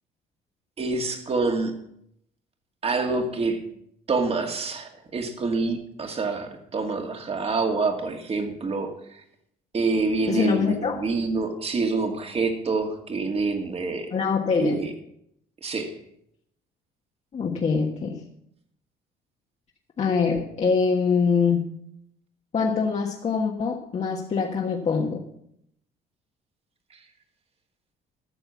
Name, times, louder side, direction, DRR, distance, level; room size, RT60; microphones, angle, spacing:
voice 1, 0.8-1.7 2.8-3.6 4.1-8.9 9.7-14.1 14.6-14.9 15.6-15.9, right 3 dB, 35° right, 5 dB, 2.2 m, -26 dB
voice 2, 10.3-11.0 14.1-14.8 17.3-18.2 20.0-21.6 22.5-25.2, left 5 dB, 40° left, -1 dB, 1.5 m, -24 dB
13.5 x 7.0 x 7.1 m, 0.74 s
cardioid pair, 110°, 17 cm